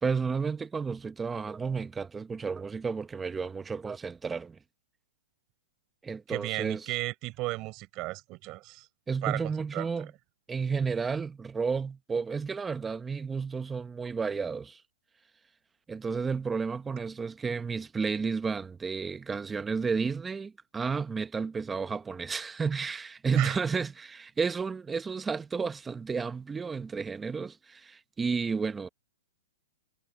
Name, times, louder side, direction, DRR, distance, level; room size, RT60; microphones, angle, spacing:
voice 1, 0.0-4.6 6.0-6.9 9.1-10.1 10.5-14.8 15.9-28.9, right 5 dB, 10° right, 1.0 m, -32 dB
voice 2, 6.3-8.9 9.2-9.4 9.7-9.9 23.3-23.6, right 21 dB, 30° right, 6.9 m, -34 dB
hypercardioid pair, 145°, 0 cm